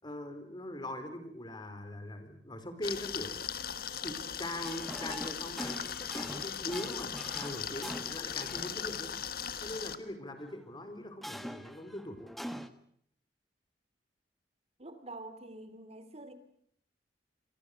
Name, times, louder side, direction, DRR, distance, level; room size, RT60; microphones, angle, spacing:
voice 1, 0.0-3.3 4.0-9.2 9.6-12.2, left 1 dB, 25° left, 8 dB, 4.4 m, -41 dB
sound 1, 2.8-10.0, left 8 dB, 60° left, 1.6 m, -38 dB
sound 2, 4.6-10.0 10.4-10.5 11.2-12.7, equal, ahead, 1.5 m, -44 dB
voice 2, 14.8-16.3, right 2 dB, 35° right, 11 dB, 2.6 m, -46 dB
28.5 x 24.0 x 6.7 m, 0.66 s
head